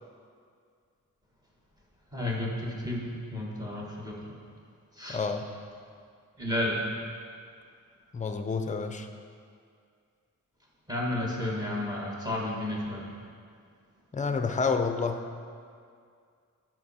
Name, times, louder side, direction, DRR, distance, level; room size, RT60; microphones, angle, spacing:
voice 1, 2.1-4.3 5.0-5.2 6.4-6.8 10.9-13.0, left 1 dB, 10° right, -4 dB, 1.6 m, -32 dB
voice 2, 5.1-5.5 8.1-9.1 14.1-15.2, left 4 dB, 20° left, 7 dB, 0.5 m, -29 dB
11.0 x 6.0 x 4.3 m, 2.2 s
wide cardioid pair, 160°, 34 cm